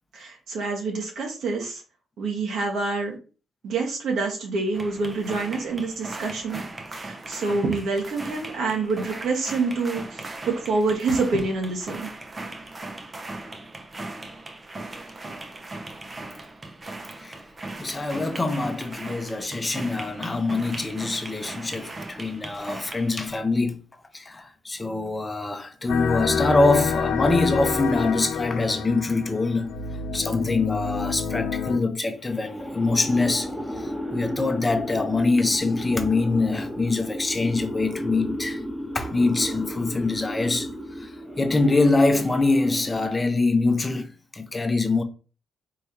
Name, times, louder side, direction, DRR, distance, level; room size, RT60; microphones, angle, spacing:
voice 1, 0.1-1.8 2.2-3.2 3.6-6.6 6.9-12.1, right 3 dB, 70° right, 1.5 m, -27 dB
sound 1, 4.7-23.3, right 2 dB, 25° right, 0.7 m, -38 dB
voice 2, 17.8-23.8 24.1-29.7 30.1-33.5 34.1-38.6 38.9-40.7 41.0-41.1 41.4-44.1 44.3-45.0, left 3 dB, 20° left, 0.8 m, -24 dB
sound 2, 25.9-31.8, left 6 dB, 85° left, 0.6 m, -28 dB
sound 3, 32.2-43.4, equal, ahead, 1.0 m, -33 dB
4.6 x 3.4 x 2.9 m
cardioid pair, 90°, 0 cm